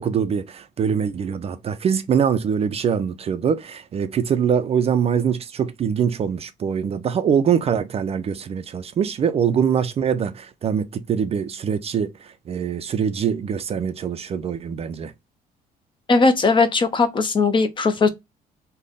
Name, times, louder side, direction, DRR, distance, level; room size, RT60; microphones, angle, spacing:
voice 1, 0.0-15.1, right 7 dB, 35° right, 0.4 m, -23 dB
voice 2, 16.1-18.1, left 4 dB, 30° left, 0.6 m, -18 dB
3.3 x 2.1 x 3.8 m
cardioid pair, 110°, 17 cm